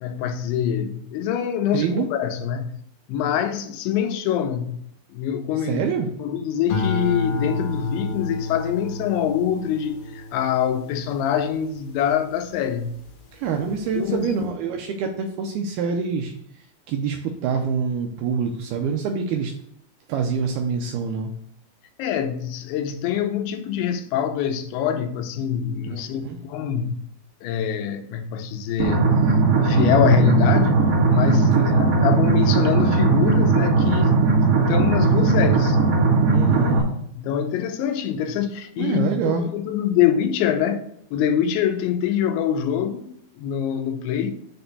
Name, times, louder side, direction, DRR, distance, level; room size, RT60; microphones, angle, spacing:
voice 1, 0.0-2.8 3.1-4.8 5.1-5.8 6.2-13.0 13.9-14.3 22.0-27.0 27.4-29.1 29.6-34.4 34.7-35.8 37.1-40.9 41.1-44.3, left 9 dB, 85° left, 3.0 m, -24 dB
voice 2, 1.7-2.1 5.6-6.1 13.3-16.4 16.9-19.5 20.1-21.3 25.9-26.4 31.4-31.9 36.3-36.9 38.8-39.5, right 6 dB, 85° right, 2.3 m, -26 dB
sound 1, 6.7-13.2 13.7-14.2, left 2 dB, 65° left, 2.9 m, -30 dB
sound 2, 28.8-36.8, right 4 dB, 50° right, 2.0 m, -18 dB
6.8 x 4.3 x 6.7 m
omnidirectional pair, 5.2 m